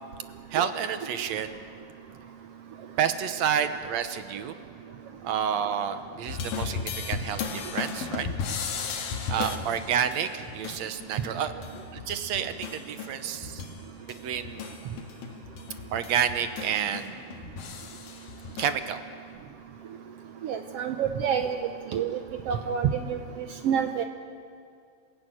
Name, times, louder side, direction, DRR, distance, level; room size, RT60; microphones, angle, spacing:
voice 1, 0.5-1.6 3.0-4.6 5.2-8.3 9.3-11.5 12.1-13.6 14.1-14.8 15.9-17.2 18.6-19.0, right 8 dB, 70° right, 10 dB, 1.8 m, -29 dB
sound 1, 6.3-13.8 14.1-18.7, left 5 dB, 85° left, 3.5 m, -35 dB
voice 2, 20.4-21.6 21.9-22.2 22.5-24.0, right 8 dB, 85° right, 6 dB, 1.3 m, -28 dB
28.0 x 16.0 x 9.1 m, 2.3 s
omnidirectional pair, 4.0 m